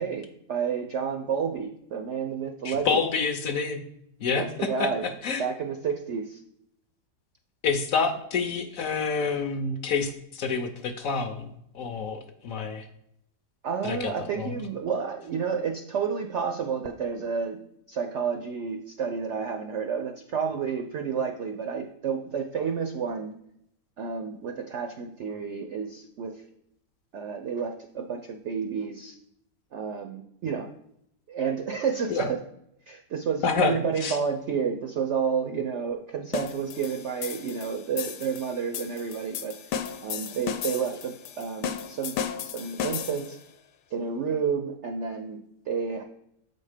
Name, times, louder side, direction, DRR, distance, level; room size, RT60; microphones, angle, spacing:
voice 1, 0.0-3.0 4.3-5.1 5.4-6.4 13.6-17.6 17.9-23.3 24.0-26.4 27.1-29.2 29.7-30.7 31.3-32.4 32.9-39.6 40.0-43.4 43.9-46.0, right 6 dB, 70° right, 5 dB, 0.6 m, -30 dB
voice 2, 2.6-3.8 4.2-5.4 7.6-12.9 13.8-14.5 32.1-32.3 33.4-34.2, left 5 dB, 65° left, 6 dB, 0.9 m, -28 dB
sound 1, 36.3-43.4, left 8 dB, 85° left, 1.2 m, -35 dB
7.2 x 4.3 x 4.9 m, 0.76 s
omnidirectional pair, 1.8 m